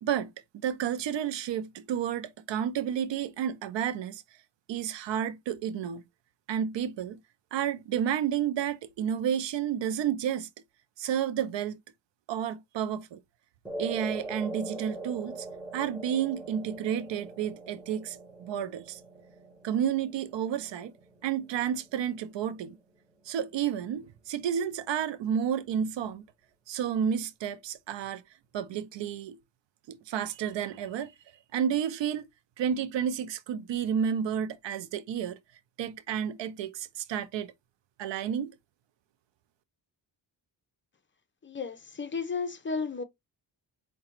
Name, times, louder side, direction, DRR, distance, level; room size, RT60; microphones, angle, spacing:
voice 1, 0.0-4.2 4.7-6.0 6.5-7.2 7.5-10.5 11.0-11.8 12.3-13.2 13.8-15.5 15.7-19.0 19.6-20.9 21.2-22.8 23.3-26.2 26.7-28.2 28.5-29.4 29.9-31.1 31.5-32.2 32.6-35.4 35.8-37.5 38.0-38.5, right 9 dB, 80° right, 0.5 m, -31 dB
sound 1, 13.7-22.1, right 2 dB, 5° right, 0.8 m, -42 dB
voice 2, 41.4-43.0, left 4 dB, 25° left, 0.6 m, -33 dB
4.8 x 2.2 x 2.9 m
wide cardioid pair, 125°, 43 cm